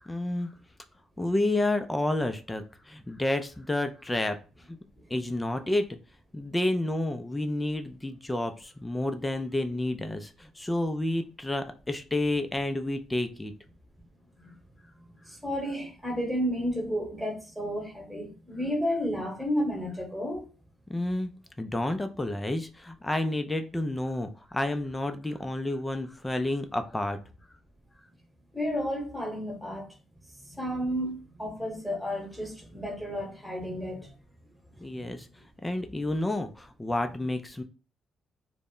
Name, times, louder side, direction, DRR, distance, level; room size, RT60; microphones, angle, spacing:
voice 1, 0.0-0.5 1.2-4.4 4.7-4.8 5.1-5.9 6.3-13.5 20.9-21.3 21.6-27.2 34.8-35.3 35.6-37.6, left 1 dB, 15° left, 0.3 m, -30 dB
voice 2, 15.2-20.5 28.5-29.9 30.4-34.1 35.0-35.1, equal, 5° right, 1.0 m, -32 dB
2.0 x 2.0 x 3.6 m
cardioid pair, 90°, 0 cm